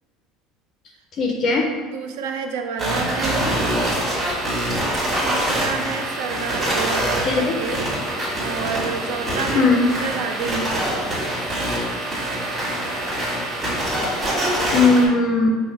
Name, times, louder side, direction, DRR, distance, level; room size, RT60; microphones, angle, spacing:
voice 1, 1.2-1.7 7.0-7.6 9.5-9.9 14.7-15.6, left 3 dB, 30° left, 1 dB, 0.4 m, -18 dB
voice 2, 1.9-3.6 5.2-7.9 8.4-9.7 10.0-11.1, right 5 dB, 80° right, 5 dB, 0.5 m, -29 dB
sound 1, 2.8-15.0, right 1 dB, 15° right, 1.3 m, -24 dB
5.2 x 2.1 x 4.6 m, 1.5 s
cardioid pair, 175°, 0 cm